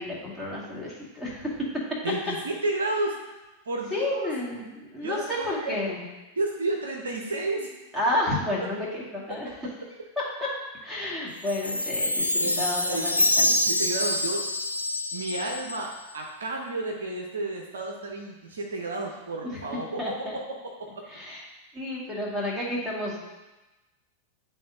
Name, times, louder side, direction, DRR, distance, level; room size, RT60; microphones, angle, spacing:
voice 1, 0.0-1.7 3.9-6.1 7.9-9.5 10.8-13.5 19.4-19.6 20.0-20.4 21.1-21.4 21.7-23.2, left 1 dB, 5° right, -7 dB, 2.1 m, -31 dB
voice 2, 2.0-3.2 3.7-4.3 5.0-5.7 6.4-7.7 12.3-13.1 13.4-14.5 15.1-20.2, right 2 dB, 70° right, 0 dB, 0.8 m, -31 dB
Chime, 11.5-15.9, left 1 dB, 90° left, 0.4 m, -26 dB
10.5 x 3.6 x 2.8 m, 1.1 s
figure-of-eight pair, 90°, 0 cm